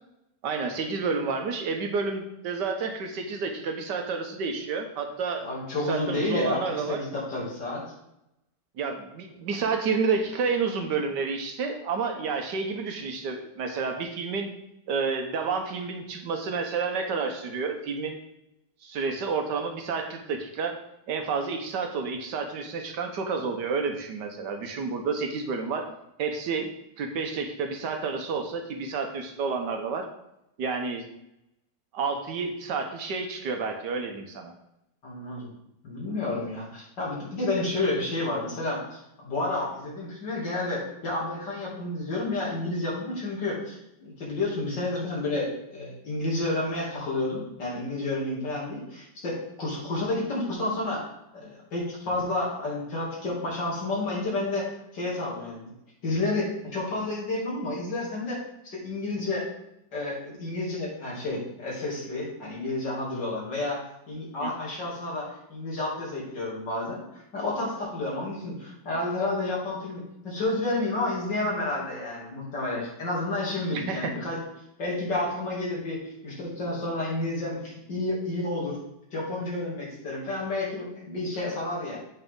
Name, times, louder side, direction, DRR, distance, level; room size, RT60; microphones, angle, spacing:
voice 1, 0.4-5.5 5.9-7.0 8.8-14.5 14.9-18.2 18.8-20.8 21.1-25.9 26.2-26.7 27.0-30.1 30.6-31.1 31.9-34.5 64.4-64.5 73.7-74.1, right 4 dB, 70° right, 5 dB, 1.5 m, -30 dB
voice 2, 5.4-7.8 35.0-35.5 35.8-55.7 56.0-59.5 59.9-74.4 74.8-78.8 79.1-82.0, left 2 dB, 70° left, -5 dB, 3.3 m, -30 dB
8.0 x 5.7 x 3.7 m, 0.84 s
omnidirectional pair, 2.0 m